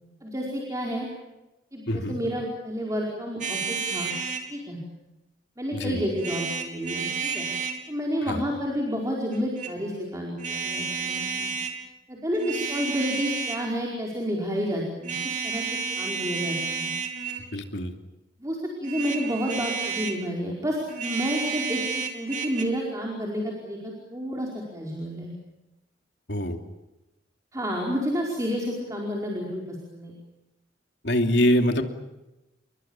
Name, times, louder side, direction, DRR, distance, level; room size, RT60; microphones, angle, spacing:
voice 1, 0.2-1.1 1.7-4.1 4.5-4.8 5.6-7.5 7.9-11.5 12.1-15.6 16.0-16.9 18.4-25.3 27.5-30.1, equal, 20° right, -2 dB, 4.9 m, -30 dB
voice 2, 1.9-2.2 5.7-6.0 8.3-8.4 17.5-17.9 26.3-26.6 31.0-31.8, equal, 70° left, 5 dB, 2.9 m, -24 dB
sound 1, 3.4-4.5 6.2-7.8 9.3-9.7 10.4-11.8 12.3-13.7 15.0-17.5 18.8-20.2 20.9-22.6, right 5 dB, 45° right, 3.2 m, -31 dB
30.0 x 23.0 x 7.3 m, 1.0 s
head